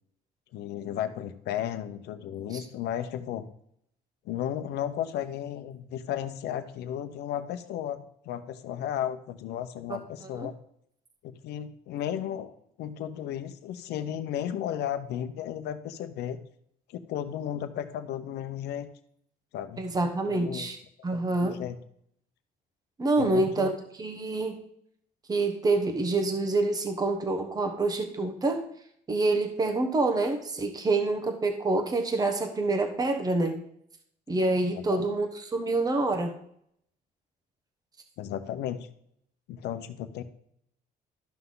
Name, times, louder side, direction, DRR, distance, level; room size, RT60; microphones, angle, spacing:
voice 1, 0.5-3.4 4.2-10.5 11.2-12.5 12.8-16.4 16.9-18.9 19.5-19.9 20.3-20.7 21.1-21.8 23.2-23.7 34.7-35.0 38.2-38.9 39.5-40.2, left 10 dB, 80° left, 9 dB, 0.9 m, -34 dB
voice 2, 19.8-20.8 21.0-21.6 23.0-24.6 25.3-28.7 29.1-33.6 34.3-36.4, right 2 dB, 20° right, 6 dB, 1.2 m, -27 dB
12.5 x 5.8 x 3.9 m, 0.69 s
cardioid pair, 110°, 17 cm